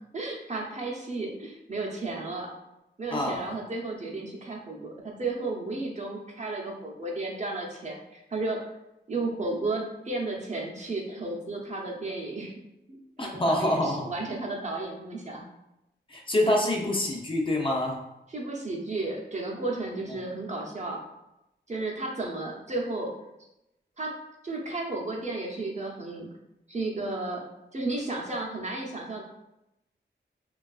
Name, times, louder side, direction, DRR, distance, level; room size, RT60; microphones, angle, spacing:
voice 1, 0.0-2.5 3.0-8.6 9.1-12.5 12.9-15.4 18.3-21.0 21.7-23.1 24.0-24.2 24.4-26.3 26.7-27.4 27.7-29.2, right 2 dB, 40° right, -1 dB, 0.6 m, -33 dB
voice 2, 3.1-3.5 13.2-14.1 16.1-18.0, left 1 dB, 30° left, -1 dB, 0.6 m, -26 dB
3.3 x 2.3 x 2.3 m, 0.89 s
cardioid pair, 75°, 18 cm